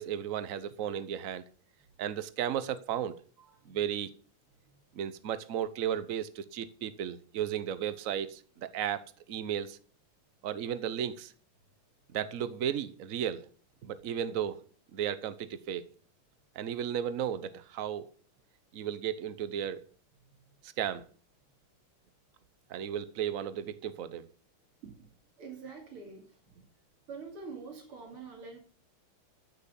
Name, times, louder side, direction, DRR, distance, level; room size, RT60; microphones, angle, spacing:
voice 1, 0.0-1.4 2.0-3.2 3.6-4.1 4.9-9.8 10.4-11.3 12.1-13.5 13.8-14.6 14.9-15.8 16.5-18.1 18.7-19.8 20.6-21.1 22.7-24.3, right 9 dB, 55° right, 1.0 m, -34 dB
voice 2, 3.4-3.8 24.8-25.1 25.4-26.4 27.1-28.6, right 4 dB, 85° right, 3.5 m, -45 dB
14.0 x 6.3 x 6.9 m
omnidirectional pair, 2.3 m